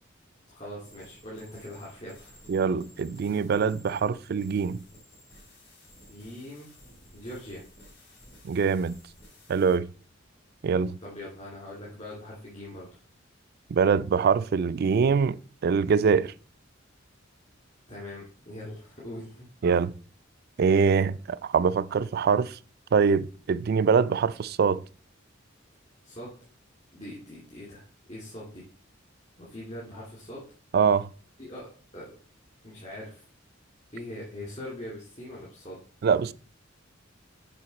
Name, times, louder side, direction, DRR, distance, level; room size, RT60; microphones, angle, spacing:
voice 1, 0.5-2.4 6.1-6.7 7.1-7.6 11.0-12.9 17.9-19.5 26.0-26.3 26.9-27.8 28.1-28.6 29.4-30.4 31.4-31.7 31.9-32.1 32.6-33.3 33.9-35.8, left 1 dB, 35° left, 2.6 m, -41 dB
sound 1, 0.8-9.8, equal, 55° left, 3.4 m, -54 dB
voice 2, 2.5-4.8 8.4-9.0 9.5-9.9 10.6-10.9 13.7-15.4 15.6-16.3 19.6-19.9 20.6-22.6 22.9-24.8 30.7-31.1 36.0-36.3, right 6 dB, 55° right, 0.4 m, -23 dB
7.7 x 5.2 x 4.2 m
head